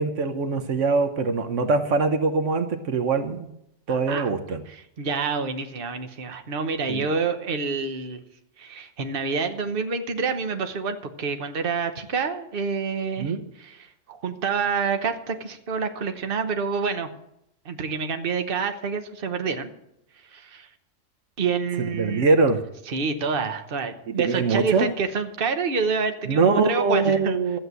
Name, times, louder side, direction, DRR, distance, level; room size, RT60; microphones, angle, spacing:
voice 1, 0.0-3.5 3.9-4.6 6.9-7.1 13.2-13.4 21.8-22.6 24.1-24.9 26.3-27.6, right 4 dB, 75° right, 8 dB, 1.3 m, -23 dB
voice 2, 3.9-4.3 4.7-8.2 8.6-17.1 17.6-19.7 20.3-20.7 21.4-22.3 22.9-27.4, right 5 dB, 50° right, 7 dB, 1.2 m, -28 dB
13.5 x 7.9 x 8.0 m, 0.80 s
omnidirectional pair, 1.3 m